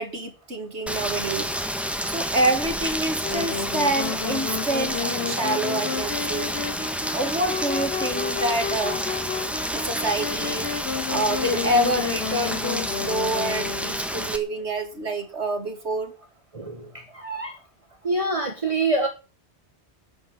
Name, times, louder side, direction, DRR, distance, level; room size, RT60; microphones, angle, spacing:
voice 1, 0.0-1.5 2.0-6.5 7.1-9.0 9.7-10.7 11.1-16.2, right 1 dB, 75° right, 2.8 m, -27 dB
Rain, 0.9-14.4, equal, ahead, 1.8 m, -29 dB
Wind instrument woodwind instrument, 3.2-14.1, left 6 dB, 65° left, 1.3 m, -31 dB
voice 2, 16.5-17.6 18.0-19.1, right 2 dB, 30° right, 1.6 m, -26 dB
12.5 x 7.4 x 9.8 m
omnidirectional pair, 1.2 m